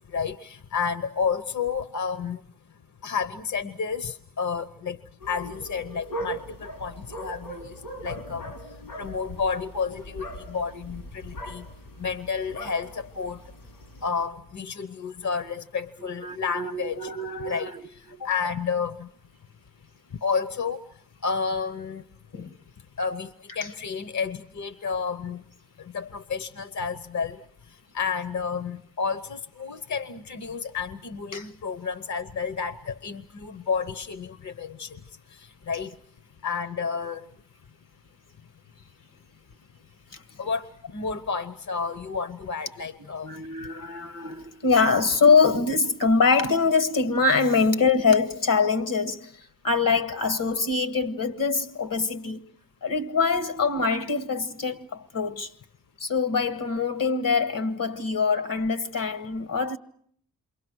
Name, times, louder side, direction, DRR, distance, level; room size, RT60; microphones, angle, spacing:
voice 1, 0.1-2.4 3.0-5.0 5.3-7.8 8.0-8.5 9.0-11.7 12.0-13.4 14.0-17.1 17.4-17.7 18.2-19.1 20.2-20.8 21.2-22.0 23.0-25.4 25.9-27.4 27.9-35.0 35.7-35.9 36.4-37.2 40.4-43.3, left 5 dB, 55° left, 1.0 m, -30 dB
sound 1, 5.2-14.1, right 1 dB, 90° left, 4.5 m, -40 dB
voice 2, 16.0-18.3 22.3-22.5 31.3-31.5 40.1-40.2 43.2-52.4 52.8-55.5 56.0-59.8, left 4 dB, 70° left, 1.5 m, -24 dB
28.0 x 23.5 x 6.3 m
cardioid pair, 45°, 34 cm